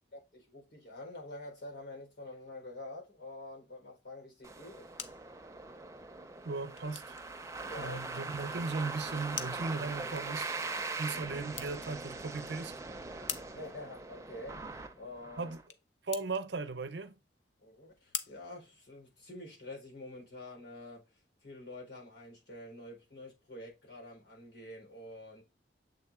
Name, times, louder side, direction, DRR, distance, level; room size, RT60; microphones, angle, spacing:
voice 1, 0.1-5.0 7.6-8.0 10.7-11.2 13.5-14.6 15.0-15.6 17.6-25.4, left 1 dB, 75° left, 4.3 m, -47 dB
sound 1, 4.4-15.6, right 3 dB, 15° right, 0.6 m, -41 dB
sound 2, 4.8-19.5, left 9 dB, 90° left, 0.7 m, -48 dB
voice 2, 6.4-7.2 7.8-10.6 11.0-12.7 13.2-13.3 15.4-15.6 16.0-17.2, right 3 dB, 75° right, 0.7 m, -37 dB
7.5 x 3.6 x 3.6 m
head